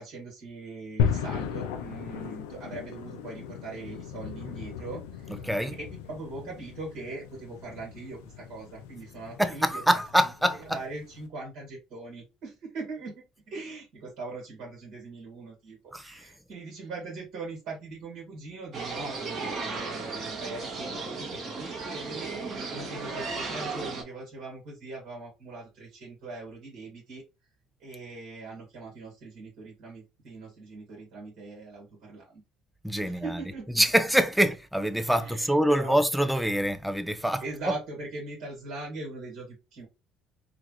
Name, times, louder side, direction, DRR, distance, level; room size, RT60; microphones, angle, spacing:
voice 1, 0.0-5.4 5.8-10.0 10.7-22.3 22.7-27.2 27.8-32.4 33.0-33.8 35.2-36.0 37.4-39.9, right 3 dB, 70° right, 2.0 m, -41 dB
sound 1, 1.0-11.3, left 8 dB, 90° left, 0.6 m, -36 dB
voice 2, 5.3-5.8 9.4-10.8 15.9-16.2 32.8-37.8, equal, ahead, 0.6 m, -25 dB
sound 2, 18.7-24.0, right 4 dB, 50° right, 1.6 m, -35 dB
3.9 x 2.4 x 3.1 m
supercardioid pair, 75°, 0 cm